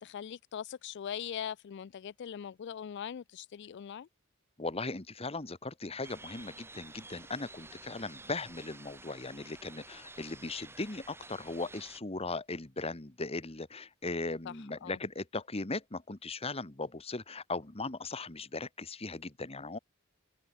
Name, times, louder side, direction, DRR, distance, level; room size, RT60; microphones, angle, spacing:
voice 1, 0.0-4.1 14.5-15.0, left 8 dB, 55° left, 0.3 m, -41 dB
voice 2, 4.6-19.8, left 3 dB, 30° left, 1.6 m, -38 dB
sound 1, 6.0-12.0, right 2 dB, 10° right, 4.6 m, -51 dB
open air
head